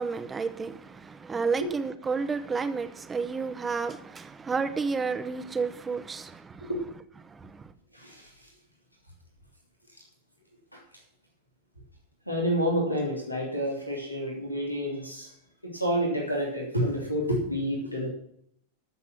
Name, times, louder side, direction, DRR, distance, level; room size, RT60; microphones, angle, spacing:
voice 1, 0.0-6.7 7.2-7.7, right 5 dB, 15° right, 0.9 m, -31 dB
voice 2, 6.6-6.9 7.9-8.3 10.7-10.8 12.3-15.3 15.6-18.1, equal, 90° left, 2.9 m, -29 dB
13.5 x 7.1 x 6.2 m
figure-of-eight pair, 90°, 0 cm